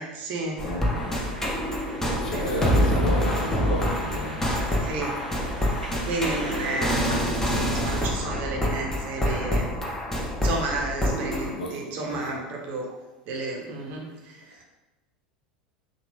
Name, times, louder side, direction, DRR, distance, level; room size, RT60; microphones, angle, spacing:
voice 1, 0.0-0.6 2.3-2.5 4.8-5.2 6.0-7.0 7.4-9.7 10.4-13.0 13.3-14.6, right 2 dB, 45° right, 0 dB, 0.6 m, -32 dB
voice 2, 0.6-1.5 2.1-4.4 11.5-12.4, left 1 dB, 70° left, -1 dB, 0.6 m, -33 dB
sound 1, 0.6-11.5, equal, 10° left, 0.5 m, -26 dB
sound 2, 0.9-7.2, right 1 dB, 85° right, 0.6 m, -38 dB
2.9 x 2.2 x 3.1 m, 1.1 s
figure-of-eight pair, 80°, 4 cm